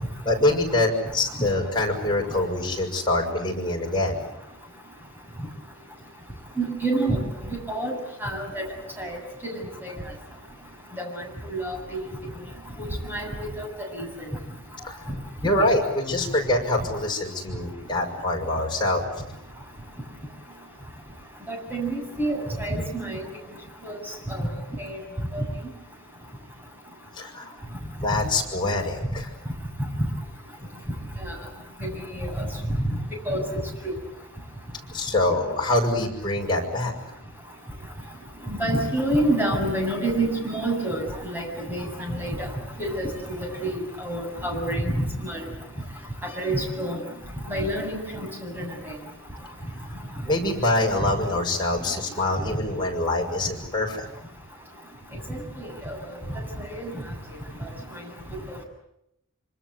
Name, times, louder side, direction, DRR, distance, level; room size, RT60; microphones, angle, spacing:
voice 1, 0.2-4.2 14.8-14.9 15.4-19.0 27.2-27.5 28.0-29.3 34.9-36.9 50.2-54.0, left 2 dB, 25° left, 0 dB, 6.5 m, -25 dB
voice 2, 6.6-7.2 7.5-8.7 9.0-9.2 9.4-9.9 11.0-12.0 12.8-13.3 13.6-13.7 13.9-14.1 21.5-23.3 23.8-23.9 24.3-24.5 24.8-25.0 25.3-25.4 31.2-31.3 31.8-32.5 33.3-33.4 33.8-33.9 38.5-41.0 41.3-42.5 42.8-43.4 43.6-45.4 46.2-47.0 47.5-48.7 55.3-56.0 56.7-56.9, right 1 dB, 10° right, 1 dB, 7.5 m, -28 dB
26.5 x 26.0 x 8.2 m, 0.81 s
head